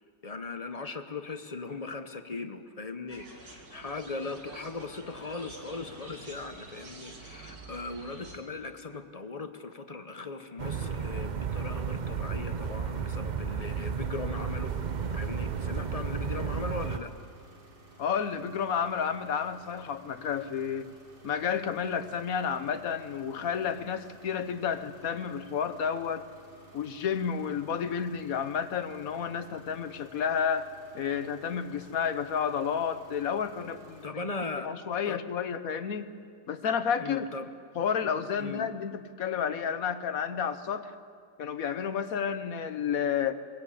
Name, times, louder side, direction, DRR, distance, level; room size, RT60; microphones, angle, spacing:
voice 1, 0.0-14.7 15.1-17.1 34.0-34.7 35.0-35.2 37.0-37.5 38.4-38.7, left 3 dB, 30° left, 8 dB, 0.7 m, -39 dB
sound 1, 3.1-8.4, right 2 dB, 60° right, 2.8 m, -48 dB
sound 2, 10.6-17.0, right 6 dB, 75° right, 0.4 m, -33 dB
sound 3, 14.6-34.1, right 1 dB, 30° right, 2.5 m, -55 dB
voice 2, 18.0-20.9 21.2-26.2 26.7-34.1 34.6-36.1 36.5-37.3 37.7-40.9 41.4-43.3, left 7 dB, 60° left, 11 dB, 1.3 m, -31 dB
23.0 x 17.0 x 8.5 m, 2.1 s
omnidirectional pair, 1.8 m